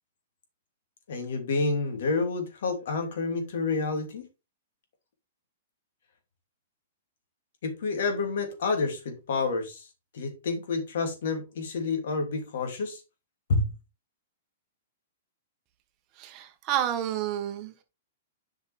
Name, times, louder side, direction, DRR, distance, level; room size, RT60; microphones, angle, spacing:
voice 1, 1.1-4.2 7.6-9.9 10.1-13.0 13.5-13.6, left 3 dB, 65° left, 2.8 m, -29 dB
voice 2, 16.2-17.8, right 11 dB, 30° right, 1.4 m, -30 dB
7.8 x 5.7 x 3.4 m
hypercardioid pair, 150°, 0 cm